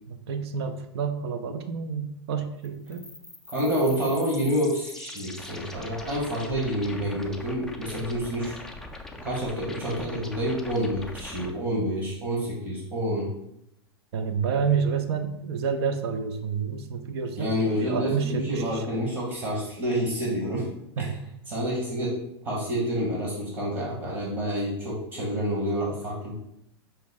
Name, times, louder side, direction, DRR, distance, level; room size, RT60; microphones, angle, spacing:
voice 1, 0.1-3.0 14.1-19.0 21.0-21.3, right 6 dB, 65° right, 8 dB, 0.5 m, -29 dB
sound 1, 2.6-11.5, left 2 dB, 5° left, 0.3 m, -42 dB
voice 2, 3.5-8.6 9.2-13.3 17.4-20.6 21.0-21.1 21.5-22.2 22.4-26.3, equal, 35° right, -4 dB, 1.3 m, -28 dB
5.5 x 2.1 x 3.5 m, 0.78 s
hypercardioid pair, 115°, 15 cm